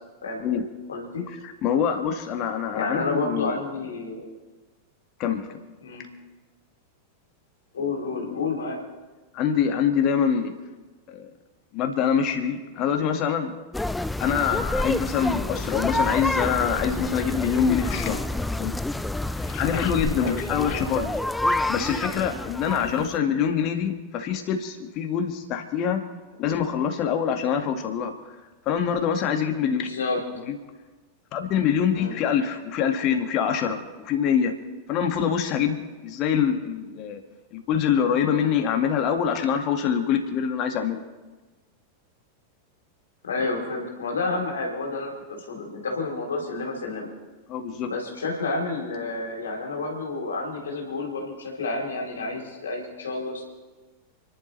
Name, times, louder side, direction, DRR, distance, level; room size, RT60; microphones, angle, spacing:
voice 1, 0.9-1.2 2.7-4.3 5.8-6.0 7.7-8.8 14.2-14.4 20.1-20.3 20.7-20.9 22.7-22.9 29.8-30.2 31.9-32.1 43.3-47.1 47.9-53.4, left 3 dB, 70° left, -1 dB, 3.8 m, -30 dB
voice 2, 1.6-3.6 5.2-5.5 9.3-10.5 11.1-11.3 11.7-13.5 14.2-18.2 18.6-18.7 19.4-21.1 21.5-26.0 26.4-28.1 28.7-29.9 30.5-30.6 31.3-34.5 34.9-37.2 37.5-41.0 47.5-47.9, left 8 dB, 40° left, 5 dB, 2.1 m, -25 dB
sound 1, 13.7-23.2, left 2 dB, 5° left, 0.4 m, -28 dB
30.0 x 11.5 x 3.4 m, 1.2 s
figure-of-eight pair, 90°, 0 cm